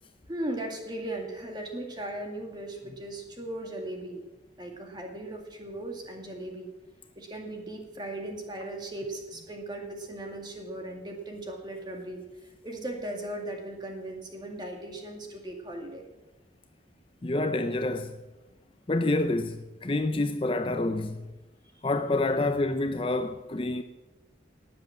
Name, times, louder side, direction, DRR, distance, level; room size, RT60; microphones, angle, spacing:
voice 1, 0.3-4.2 4.6-6.7 7.2-16.0, right 1 dB, 25° right, 2.2 m, -37 dB
voice 2, 17.2-18.2 18.9-21.3 21.8-23.8, left 2 dB, 30° left, 0.5 m, -28 dB
18.5 x 7.7 x 7.3 m
head